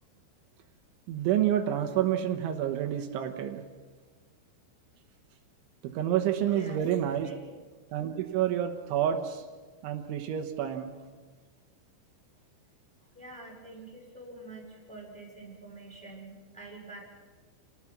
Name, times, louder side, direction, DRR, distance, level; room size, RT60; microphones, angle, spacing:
voice 1, 1.1-3.6 6.0-7.3 7.9-9.5 9.8-10.9, right 10 dB, 80° right, 5 dB, 3.6 m, -28 dB
voice 2, 6.4-6.8 7.2-7.5 13.1-17.0, right 2 dB, ahead, -3 dB, 4.7 m, -46 dB
29.0 x 18.5 x 6.0 m, 1.4 s
omnidirectional pair, 5.4 m